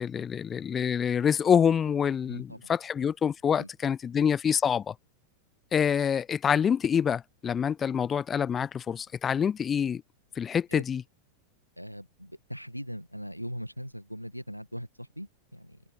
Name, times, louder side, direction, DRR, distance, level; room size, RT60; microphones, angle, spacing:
voice 1, 0.0-4.9 5.7-10.0 10.4-11.0, left 7 dB, 20° left, 0.5 m, -26 dB
voice 2, 2.3-2.7 3.6-3.7 10.7-10.8 11.8-15.8, equal, 90° left, 1.6 m, -40 dB
figure-of-eight pair, 90°, 0 cm